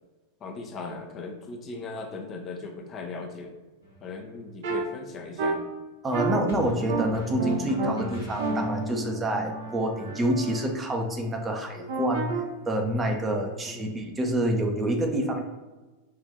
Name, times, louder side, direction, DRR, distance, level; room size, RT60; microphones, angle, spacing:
voice 1, 0.4-3.5 4.0-5.6 10.1-10.2 13.7-13.9, left 3 dB, 30° left, 3 dB, 0.6 m, -38 dB
sound 1, 3.8-4.1 6.5-9.1, right 1 dB, 75° left, 1.3 m, -40 dB
sound 2, 4.6-4.8 5.4-5.5 6.1-6.4 6.9-7.0 7.4-7.9 8.4-10.6 11.9-12.4, right 3 dB, 55° right, 0.8 m, -30 dB
voice 2, 6.0-15.4, right 1 dB, 15° right, 2 dB, 0.7 m, -27 dB
5.1 x 2.6 x 3.9 m, 1.2 s
figure-of-eight pair, 90°, 0 cm